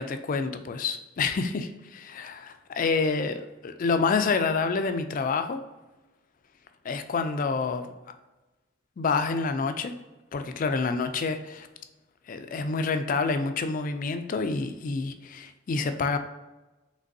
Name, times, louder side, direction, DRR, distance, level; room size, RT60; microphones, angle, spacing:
voice 1, 0.0-2.4 2.7-5.6 6.8-7.9 9.0-9.9 10.3-11.7 12.3-16.2, left 4 dB, 40° left, 9 dB, 0.3 m, -28 dB
5.1 x 3.3 x 2.7 m, 1.1 s
head